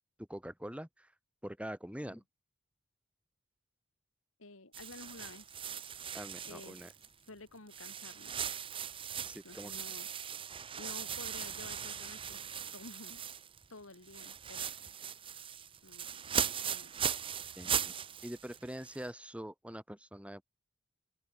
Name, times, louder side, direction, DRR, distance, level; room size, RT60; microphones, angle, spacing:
voice 1, 0.3-1.1 1.4-2.2 6.1-6.9 9.3-9.7 17.6-17.9 18.2-20.4, equal, 5° right, 4.6 m, -44 dB
voice 2, 4.4-5.5 6.4-6.8 7.3-8.3 9.4-10.1 10.8-12.4 12.7-13.2 13.7-15.0 15.8-17.1, left 2 dB, 75° left, 2.9 m, -52 dB
sound 1, 4.7-7.3 7.7-13.7 13.9-19.1, right 8 dB, 25° right, 0.6 m, -39 dB
open air
head